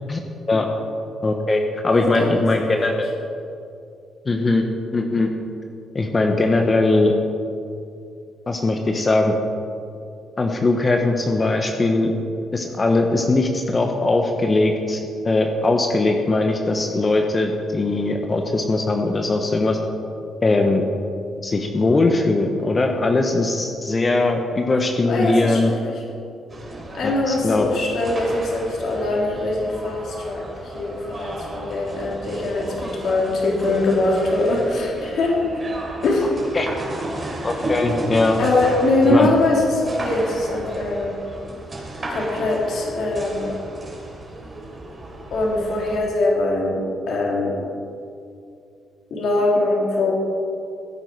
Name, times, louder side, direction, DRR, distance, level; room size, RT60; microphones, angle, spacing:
voice 1, 1.2-3.1 4.3-4.6 4.9-5.3 5.9-7.1 8.5-9.3 10.4-12.1 12.5-19.8 20.4-20.8 21.4-25.7 27.0-27.7 36.5-36.7 37.4-38.4 39.1-39.3, left 2 dB, 30° left, 3 dB, 1.0 m, -20 dB
voice 2, 1.9-3.0 25.0-26.0 26.9-35.6 36.0-36.3 38.4-41.2 42.1-43.5 45.3-46.8 47.1-47.6 49.1-50.1, left 2 dB, 65° left, -3 dB, 3.3 m, -22 dB
sound 1, 26.5-46.0, right 1 dB, 30° right, 3.1 m, -34 dB
15.5 x 9.1 x 4.7 m, 2.5 s
cardioid pair, 90°, 0 cm